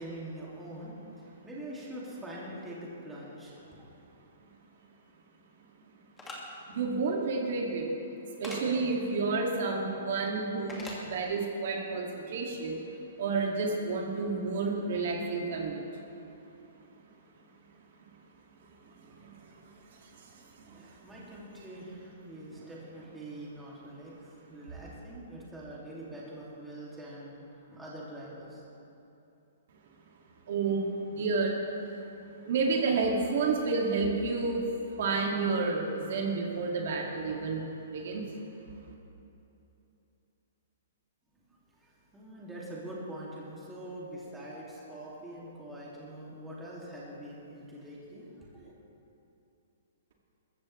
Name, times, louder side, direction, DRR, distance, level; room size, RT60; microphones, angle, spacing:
voice 1, 0.0-3.9 19.9-20.1 20.6-28.6 41.7-48.8, right 1 dB, 5° right, -6 dB, 2.3 m, -44 dB
sound 1, 6.2-6.4 8.4-8.6 10.7-11.0, left 2 dB, 10° left, 1.9 m, -41 dB
voice 2, 6.7-7.9 8.4-12.8 13.2-15.8 19.1-19.4 19.9-20.8 30.5-31.6 32.5-34.7 35.0-38.2, right 4 dB, 55° right, 0 dB, 2.1 m, -30 dB
22.0 x 14.0 x 3.2 m, 2.9 s
hypercardioid pair, 165°, 0 cm